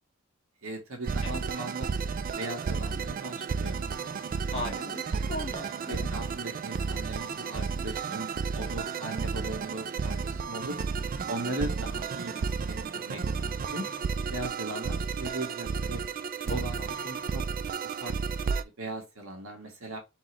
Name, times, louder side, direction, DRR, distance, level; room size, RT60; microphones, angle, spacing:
voice 1, 0.6-1.9 2.4-3.9 4.4-4.8 5.9-10.8 11.3-13.2 13.7-13.9 14.3-16.0 16.4-16.8 17.0-17.4 17.8-18.2 18.5-20.0, right 2 dB, 85° right, 1.5 m, -38 dB
sound 1, 1.0-18.6, right 5 dB, 45° right, 0.3 m, -32 dB
voice 2, 1.2-1.6 4.5-6.1 8.1-8.4 11.2-11.7 16.5-16.9, left 1 dB, 30° left, 1.8 m, -39 dB
3.9 x 3.8 x 3.0 m
head